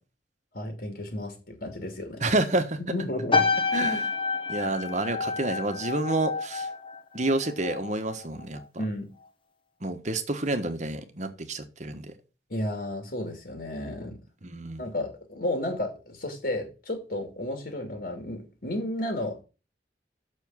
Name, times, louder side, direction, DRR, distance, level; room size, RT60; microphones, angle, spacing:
voice 1, 0.5-2.3 2.9-3.4 3.8-4.0 8.8-9.1 12.5-14.2 14.8-19.4, left 1 dB, 60° left, 2.5 m, -32 dB
voice 2, 2.2-2.8 3.7-4.1 4.5-6.7 7.1-8.6 9.8-12.1 14.4-14.8, right 2 dB, 45° right, 1.3 m, -29 dB
sound 1, 3.3-7.9 8.2-8.6, left 4 dB, 30° left, 1.4 m, -29 dB
7.2 x 6.6 x 6.3 m
head